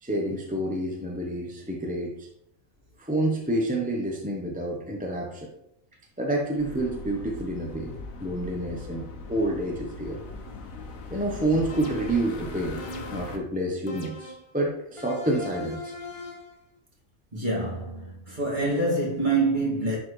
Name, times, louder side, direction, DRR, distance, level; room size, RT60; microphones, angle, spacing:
voice 1, 0.0-2.3 3.0-5.5 6.2-7.9 8.2-10.2 11.1-12.8 13.1-15.9, right 1 dB, 10° right, 0.7 m, -28 dB
sound 1, 6.6-13.4, left 3 dB, 75° left, 1.3 m, -39 dB
sound 2, 11.7-12.3 12.8-13.4 13.9-14.5 15.0-16.6, left 2 dB, 30° left, 0.7 m, -40 dB
voice 2, 17.3-20.0, right 2 dB, 35° right, 2.4 m, -26 dB
11.0 x 4.2 x 3.2 m
omnidirectional pair, 1.4 m